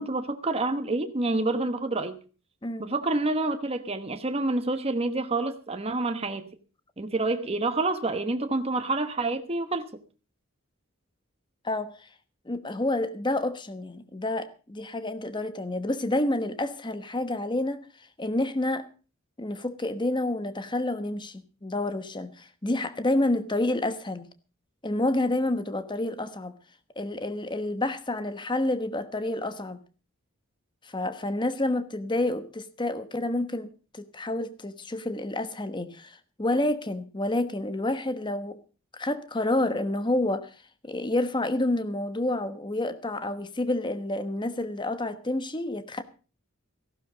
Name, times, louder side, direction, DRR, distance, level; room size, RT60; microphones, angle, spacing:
voice 1, 0.0-2.2 2.8-6.5 7.0-9.9, right 2 dB, 30° right, 1.1 m, -28 dB
voice 2, 12.5-17.8 18.2-18.8 19.4-24.3 24.8-26.6 27.0-29.8 30.8-38.6 38.9-40.5 40.8-46.0, left 1 dB, 20° left, 1.1 m, -29 dB
15.0 x 12.0 x 5.1 m
head